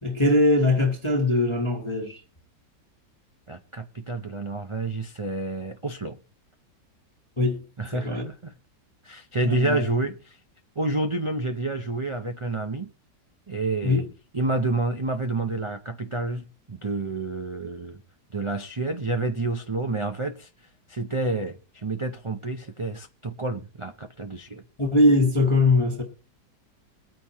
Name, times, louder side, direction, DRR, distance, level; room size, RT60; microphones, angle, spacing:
voice 1, 0.0-2.2 7.4-8.3 9.4-10.0 13.8-14.1 24.8-26.0, left 2 dB, 20° left, 1.3 m, -22 dB
voice 2, 3.5-6.2 7.8-8.5 9.0-10.4 10.8-12.9 13.5-14.0 14.3-18.0 18.3-20.5 20.9-24.6, right 2 dB, 50° right, 0.3 m, -29 dB
22.0 x 9.1 x 3.0 m
omnidirectional pair, 1.9 m